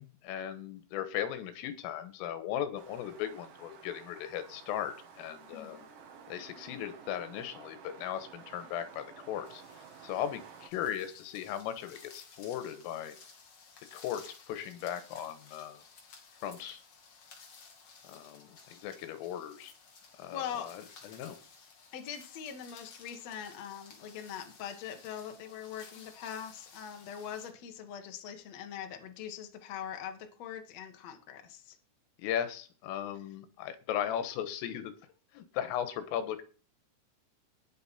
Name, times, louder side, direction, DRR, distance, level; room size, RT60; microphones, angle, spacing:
voice 1, 0.0-5.8 6.3-9.6 10.0-13.2 13.9-15.8 16.4-16.8 18.0-19.7 20.2-21.4 32.2-34.9 35.3-36.4, left 10 dB, 90° left, 10 dB, 3.9 m, -37 dB
sound 1, 2.8-10.7, right 6 dB, 60° right, 2.4 m, -52 dB
voice 2, 5.5-5.9 20.3-20.7 21.9-31.8, left 9 dB, 60° left, 5 dB, 1.8 m, -42 dB
sound 2, 9.4-27.5, left 5 dB, 45° left, 2.2 m, -56 dB
19.0 x 6.4 x 4.3 m, 0.38 s
omnidirectional pair, 5.7 m